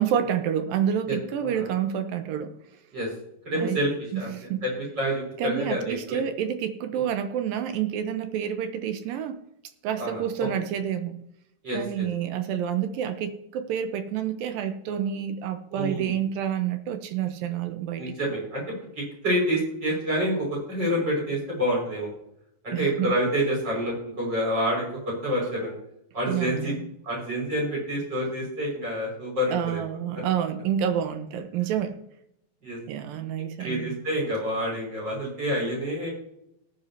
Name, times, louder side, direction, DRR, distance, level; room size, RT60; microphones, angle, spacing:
voice 1, 0.0-2.5 3.5-3.8 4.1-4.6 5.4-9.4 9.8-11.1 11.7-18.3 22.7-23.1 26.3-26.9 29.5-32.0 32.9-34.0, right 9 dB, 75° right, 9 dB, 2.3 m, -28 dB
voice 2, 3.5-4.3 4.6-6.2 6.9-7.0 10.0-10.2 11.6-12.1 15.7-16.1 18.0-18.6 19.2-22.1 22.6-25.7 26.1-26.7 27.0-29.8 30.1-30.2 32.6-32.8 33.6-36.1, equal, 25° right, -3 dB, 5.9 m, -28 dB
19.0 x 9.2 x 2.8 m, 0.78 s
omnidirectional pair, 4.7 m